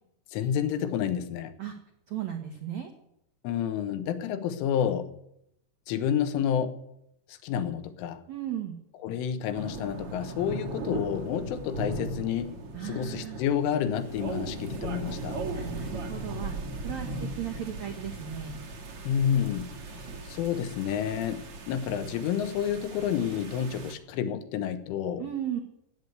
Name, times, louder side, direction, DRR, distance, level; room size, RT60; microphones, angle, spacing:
voice 1, 0.3-1.5 3.4-5.1 5.9-6.8 7.3-8.2 9.0-12.6 12.8-15.4 19.1-25.3, left 9 dB, 85° left, 10 dB, 3.6 m, -29 dB
voice 2, 2.1-2.9 8.3-8.8 12.7-13.4 15.5-16.5 16.8-18.6 25.2-25.6, right 10 dB, 80° right, 4 dB, 1.6 m, -36 dB
sound 1, 9.5-23.9, right 2 dB, 60° right, 1.4 m, -38 dB
15.5 x 8.1 x 9.7 m, 0.77 s
omnidirectional pair, 5.6 m